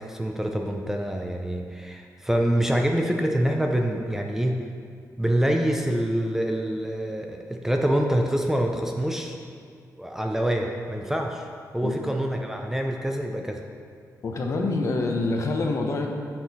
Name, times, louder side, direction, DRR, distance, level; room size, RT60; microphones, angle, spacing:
voice 1, 0.0-4.6 5.2-9.4 10.0-11.4 11.7-13.6, right 1 dB, 5° right, 2 dB, 0.5 m, -26 dB
voice 2, 14.2-16.1, left 3 dB, 50° left, 2 dB, 0.8 m, -26 dB
6.5 x 6.1 x 4.1 m, 2.1 s
wide cardioid pair, 140°, 6 cm